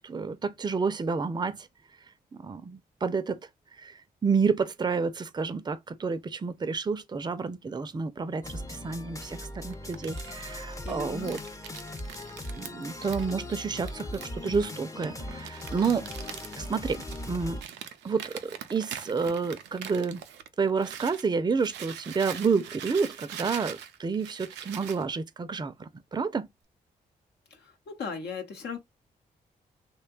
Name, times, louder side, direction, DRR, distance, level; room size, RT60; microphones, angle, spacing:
voice 1, 0.0-1.7 2.3-3.4 3.8-3.9 4.2-11.4 12.6-16.0 16.6-17.0 17.3-17.6 18.0-20.2 20.6-26.5, right 5 dB, 25° right, 0.5 m, -29 dB
sound 1, 8.4-17.6, left 1 dB, 20° left, 0.6 m, -39 dB
Crumpling crinkling, 9.7-21.3 21.6-25.0, right 9 dB, 90° right, 0.4 m, -43 dB
voice 2, 10.8-11.4 27.5-28.8, left 5 dB, 75° left, 0.9 m, -37 dB
2.7 x 2.2 x 2.3 m
supercardioid pair, 50°, 17 cm